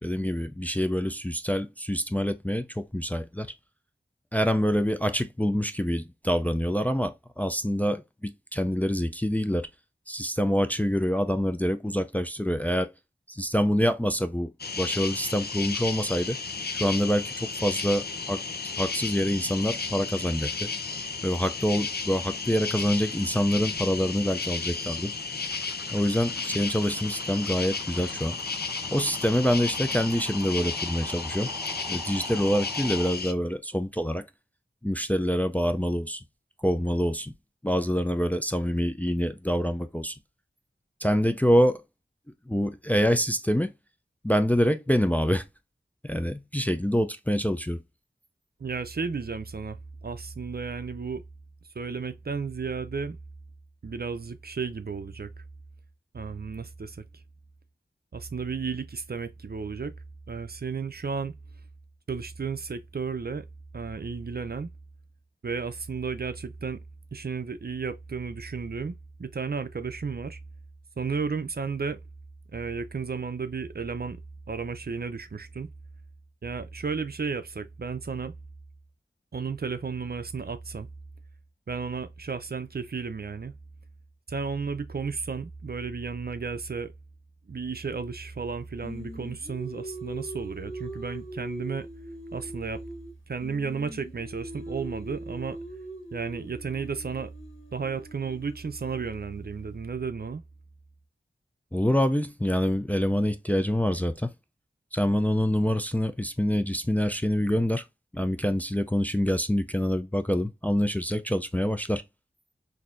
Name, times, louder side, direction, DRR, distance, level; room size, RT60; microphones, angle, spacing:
voice 1, 0.0-3.5 4.3-9.7 10.1-12.9 13.3-16.4 16.7-18.4 18.8-20.7 21.2-25.1 25.9-28.4 28.9-31.5 31.9-34.2 34.8-36.2 36.6-37.3 37.6-40.2 41.0-41.8 42.5-43.7 44.2-45.5 46.0-47.8 101.7-104.3 104.9-107.8 108.1-112.0, equal, 10° left, 0.4 m, -26 dB
sound 1, 14.6-33.3, left 4 dB, 55° left, 0.6 m, -33 dB
sound 2, 25.4-33.1, right 1 dB, 15° right, 0.8 m, -44 dB
voice 2, 48.6-51.2 51.8-53.2 53.8-55.3 56.1-57.0 58.1-59.9 60.3-61.3 62.1-63.5 63.7-64.7 65.4-66.8 67.1-70.4 71.0-72.0 72.5-74.2 74.5-75.7 76.4-78.3 79.3-80.9 81.7-83.5 84.3-86.9 87.5-91.9 92.3-92.8 93.3-95.6 96.1-97.3 97.7-100.4, right 5 dB, 50° right, 0.5 m, -33 dB
Singing, 88.8-93.1 93.4-99.4, right 1 dB, 85° left, 1.4 m, -41 dB
4.0 x 2.7 x 2.5 m
wide cardioid pair, 45°, 20 cm